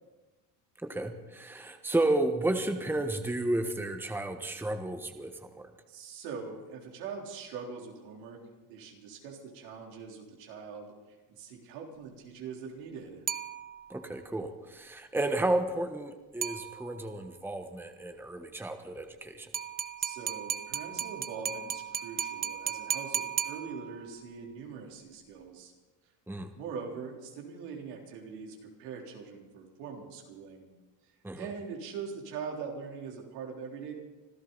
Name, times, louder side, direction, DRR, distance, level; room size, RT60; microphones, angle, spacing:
voice 1, 0.8-5.3 13.9-19.5 26.3-26.5 31.2-31.5, right 2 dB, 5° right, 6 dB, 1.3 m, -32 dB
voice 2, 5.9-8.4 8.7-13.2 20.0-25.7 26.6-30.7 31.4-33.9, right 5 dB, 85° right, 0 dB, 3.8 m, -42 dB
sound 1, 13.3-14.1 16.4-17.2 19.5-24.2, right 8 dB, 20° right, 0.5 m, -35 dB
25.5 x 13.0 x 4.1 m, 1.2 s
supercardioid pair, 95°, 46 cm